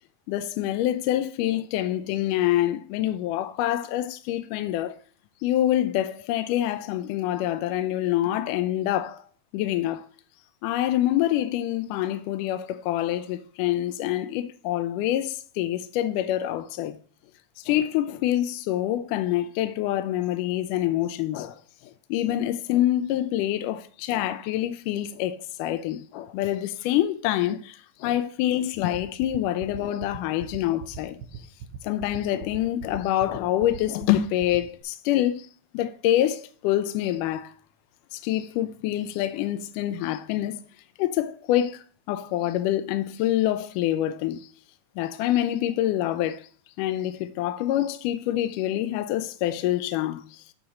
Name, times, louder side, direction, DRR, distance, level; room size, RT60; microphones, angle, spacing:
voice 1, 0.3-5.0 5.4-9.2 9.5-10.1 10.6-17.0 17.6-31.2 31.8-35.5 35.7-37.5 38.1-40.6 41.0-44.5 45.0-46.5 46.8-50.4, left 13 dB, 80° left, 2.0 m, -26 dB
sound 1, 28.8-34.8, right 7 dB, 80° right, 2.4 m, -38 dB
7.9 x 4.1 x 6.2 m
omnidirectional pair, 3.9 m